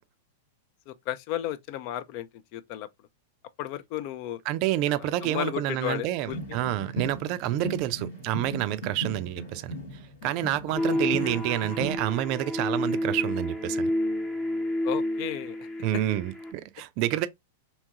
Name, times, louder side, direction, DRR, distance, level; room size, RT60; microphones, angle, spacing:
voice 1, 0.9-2.3 2.5-2.9 3.6-4.4 5.0-6.6 14.8-15.7, left 12 dB, 50° left, 0.3 m, -34 dB
voice 2, 4.5-9.7 10.2-13.9 15.8-17.3, right 14 dB, 50° right, 0.3 m, -28 dB
sound 1, 6.3-12.0, right 1 dB, 80° left, 1.9 m, -37 dB
sound 2, 10.7-16.5, left 1 dB, 25° left, 0.9 m, -30 dB
2.8 x 2.3 x 2.8 m
hypercardioid pair, 110°, 0 cm